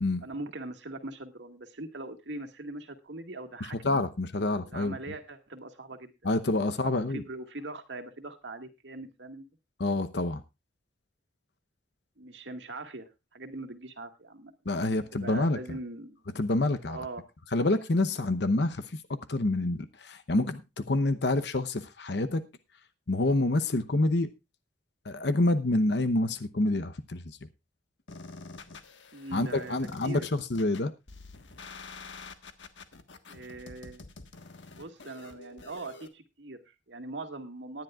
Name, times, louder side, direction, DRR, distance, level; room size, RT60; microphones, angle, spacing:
voice 1, 0.2-4.0 4.6-6.4 6.6-9.4 12.2-14.5 15.1-16.2 16.9-17.3 29.1-30.3 33.3-34.0 34.7-37.8, right 2 dB, 70° right, 1.9 m, -41 dB
voice 2, 3.8-5.0 6.2-7.2 9.8-10.4 14.7-15.6 16.4-17.0 17.5-22.4 23.1-24.3 25.0-27.2 29.3-30.9, left 2 dB, 65° left, 0.9 m, -27 dB
sound 1, 28.1-36.1, left 3 dB, 80° left, 1.5 m, -47 dB
19.0 x 10.5 x 2.4 m
head